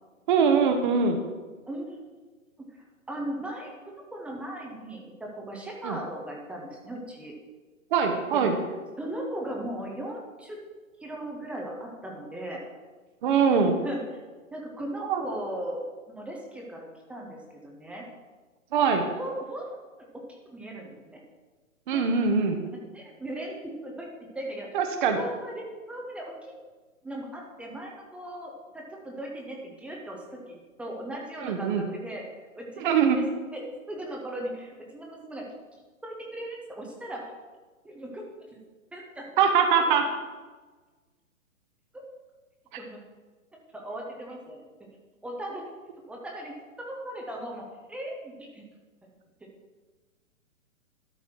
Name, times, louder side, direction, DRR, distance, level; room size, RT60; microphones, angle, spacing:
voice 1, 0.3-1.2 5.8-6.0 7.9-8.6 13.2-13.7 15.1-15.2 18.7-19.1 21.9-22.6 24.7-25.2 31.4-31.8 32.8-33.2 39.4-40.0, right 6 dB, 35° right, 6 dB, 0.9 m, -22 dB
voice 2, 1.7-2.0 2.6-2.8 3.1-7.3 8.3-8.4 9.0-10.6 11.0-12.6 13.6-14.0 14.5-18.0 19.1-19.7 20.4-21.2 21.9-22.5 22.9-24.8 25.0-26.5 27.0-33.2 33.5-35.4 36.0-37.3 37.8-38.3 38.5-38.6 38.9-39.3 42.8-43.0 43.7-44.6 45.2-45.7 46.1-47.6 47.9-48.6, right 1 dB, 5° right, -1 dB, 0.6 m, -38 dB
12.5 x 4.2 x 6.0 m, 1.3 s
figure-of-eight pair, 125°, 42 cm